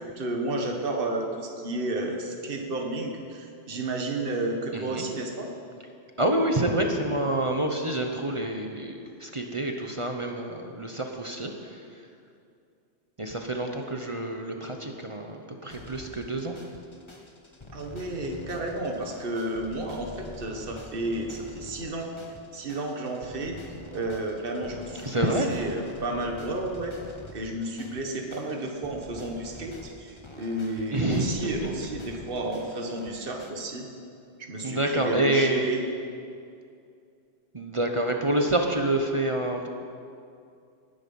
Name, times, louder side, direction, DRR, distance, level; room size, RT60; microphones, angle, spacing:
voice 1, 0.0-5.5 17.7-22.1 22.5-23.6 23.9-26.9 27.3-33.9 34.4-35.8, right 2 dB, 55° right, 2 dB, 1.6 m, -32 dB
voice 2, 4.7-5.1 6.2-12.0 13.2-16.6 25.0-25.5 30.9-31.4 34.6-35.7 37.5-39.7, right 1 dB, 30° right, 3 dB, 1.0 m, -27 dB
sound 1, 15.7-33.5, left 2 dB, 25° left, 1.2 m, -46 dB
19.5 x 10.5 x 5.5 m, 2.4 s
omnidirectional pair, 1.1 m